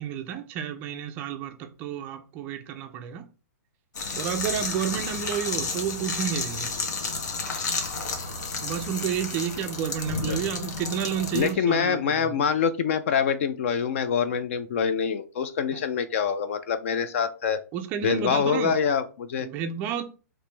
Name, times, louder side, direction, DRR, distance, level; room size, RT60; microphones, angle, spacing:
voice 1, 0.0-3.2 4.1-6.7 8.6-12.3 15.7-15.8 17.7-18.8 19.4-20.0, right 9 dB, 20° right, 0.3 m, -31 dB
sound 1, 3.9-11.5, left 4 dB, 80° left, 1.3 m, -31 dB
voice 2, 11.3-17.6 18.0-19.5, left 7 dB, 50° left, 0.4 m, -25 dB
4.9 x 3.0 x 3.2 m
hypercardioid pair, 170°, 9 cm